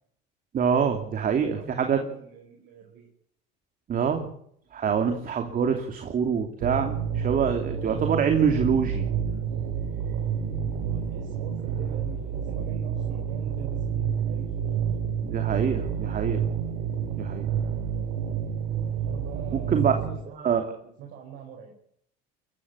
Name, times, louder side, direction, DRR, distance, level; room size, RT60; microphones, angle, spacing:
voice 1, 0.5-2.0 3.9-4.3 4.7-9.1 15.2-16.5 17.1-17.5 19.5-19.9 20.4-20.7, right 7 dB, 45° right, 5 dB, 2.8 m, -25 dB
voice 2, 1.2-3.1 10.8-14.9 18.9-21.7, right 7 dB, 70° right, 1 dB, 5.0 m, -44 dB
sound 1, 6.6-20.2, right 8 dB, 90° right, 3.4 m, -29 dB
sound 2, 10.4-13.8, right 2 dB, 10° right, 4.2 m, -46 dB
22.5 x 14.5 x 8.6 m, 0.71 s
supercardioid pair, 90°, 20 cm